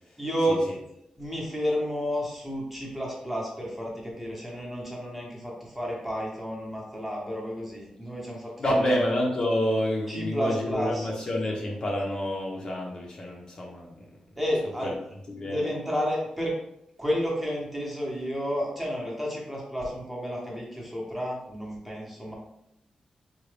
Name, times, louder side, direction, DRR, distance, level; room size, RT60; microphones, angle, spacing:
voice 1, 0.2-0.6 1.2-8.9 10.1-11.1 14.4-14.9 15.4-16.5 17.0-22.4, equal, 5° right, -3 dB, 0.8 m, -31 dB
voice 2, 8.6-14.0 14.8-15.0 15.3-15.7, left 1 dB, 35° left, -1 dB, 0.6 m, -28 dB
3.8 x 2.2 x 3.2 m, 0.79 s
wide cardioid pair, 160°, 2 cm